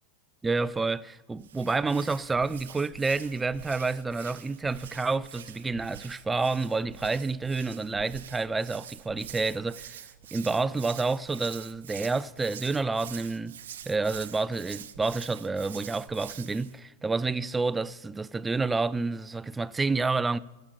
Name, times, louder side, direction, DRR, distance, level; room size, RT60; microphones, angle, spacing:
voice 1, 0.4-10.0 10.3-13.6 13.9-20.4, right 3 dB, 10° right, 0.3 m, -29 dB
Hands, 1.3-16.8, right 9 dB, 60° right, 0.8 m, -45 dB
14.0 x 6.6 x 9.6 m
figure-of-eight pair, 90°, 0 cm